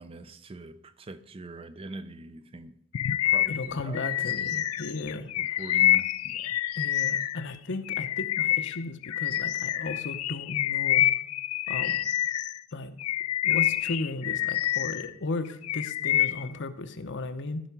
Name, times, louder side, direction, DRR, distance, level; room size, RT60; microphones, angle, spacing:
voice 1, 0.0-2.7 3.1-4.1 4.4-4.7 5.4-6.6, right 2 dB, 25° right, 0.5 m, -43 dB
Bird vocalization bird call bird song, 2.9-7.5 7.9-12.6 13.0-15.1 15.4-16.5, left 13 dB, 85° left, 0.4 m, -27 dB
voice 2, 3.5-5.6 6.8-11.1 11.7-12.0 12.7-13.0 13.4-17.6, left 2 dB, 55° left, 0.8 m, -35 dB
14.5 x 5.5 x 5.9 m
head